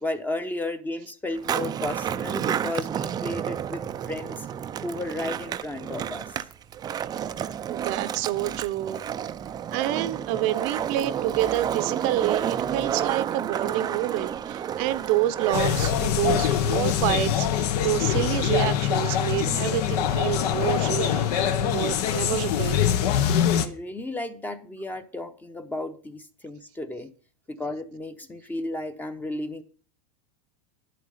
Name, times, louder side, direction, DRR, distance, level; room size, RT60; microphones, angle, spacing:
voice 1, 0.0-4.5 4.8-6.4 23.5-27.1 27.5-29.6, left 2 dB, 10° left, 0.8 m, -33 dB
Skateboard, 1.3-20.0, right 9 dB, 20° right, 0.5 m, -31 dB
voice 2, 7.7-9.0 9.7-22.8, right 14 dB, 50° right, 0.8 m, -28 dB
sound 1, 15.5-23.7, left 9 dB, 75° left, 1.3 m, -24 dB
11.0 x 8.5 x 5.7 m
supercardioid pair, 145°, 21 cm